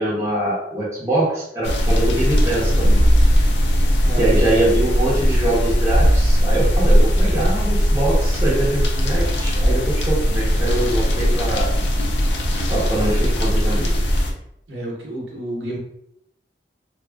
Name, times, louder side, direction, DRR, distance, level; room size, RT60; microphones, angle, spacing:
voice 1, 0.0-3.1 4.2-11.7 12.7-13.9, right 1 dB, 15° right, -7 dB, 0.8 m, -23 dB
sound 1, 1.6-14.3, equal, 85° left, 0.5 m, -18 dB
voice 2, 4.0-4.7 14.7-15.8, right 1 dB, 80° right, -3 dB, 0.6 m, -30 dB
2.8 x 2.3 x 2.3 m, 0.74 s
head